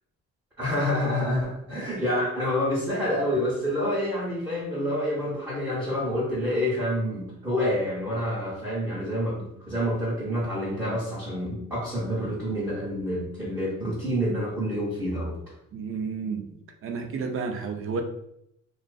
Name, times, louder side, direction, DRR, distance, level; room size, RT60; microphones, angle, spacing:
voice 1, 0.6-15.4, equal, 10° right, -7 dB, 0.7 m, -28 dB
voice 2, 15.7-18.0, right 5 dB, 45° right, 5 dB, 0.4 m, -32 dB
2.5 x 2.3 x 2.3 m, 0.77 s
cardioid pair, 90°, 30 cm